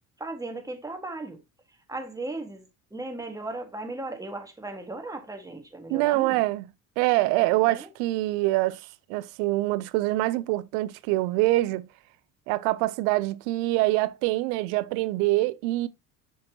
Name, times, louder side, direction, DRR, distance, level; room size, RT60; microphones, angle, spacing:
voice 1, 0.2-1.4 1.9-6.4 7.7-7.9, right 2 dB, 10° right, 1.7 m, -36 dB
voice 2, 5.9-6.7 7.0-11.9 12.5-15.9, right 18 dB, 80° right, 0.7 m, -25 dB
6.6 x 5.2 x 2.8 m
supercardioid pair, 85°, 41 cm